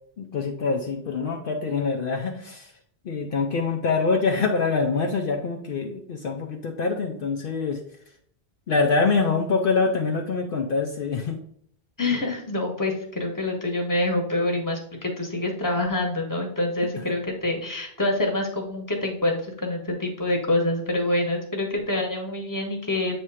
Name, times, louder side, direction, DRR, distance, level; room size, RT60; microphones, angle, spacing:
voice 1, 0.2-2.7 3.0-7.8 8.7-11.4 17.0-17.1, left 4 dB, 65° left, 2 dB, 0.8 m, -25 dB
voice 2, 12.0-23.2, left 1 dB, 20° left, 2 dB, 1.1 m, -26 dB
7.9 x 2.9 x 4.8 m, 0.66 s
omnidirectional pair, 1.1 m